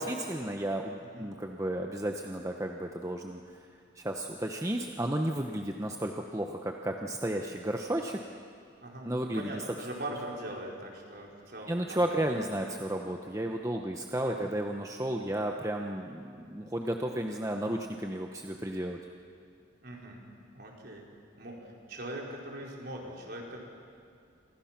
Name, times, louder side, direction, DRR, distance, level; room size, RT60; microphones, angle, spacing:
voice 1, 0.0-3.4 4.0-8.2 9.0-9.9 10.1-10.2 11.7-19.0, right 1 dB, 15° right, 2 dB, 1.0 m, -33 dB
voice 2, 9.4-12.3 12.6-12.8 14.2-14.5 19.8-20.2 20.5-21.0 21.3-23.6, right 1 dB, 50° right, -2 dB, 4.6 m, -41 dB
28.5 x 26.0 x 6.0 m, 2.3 s
head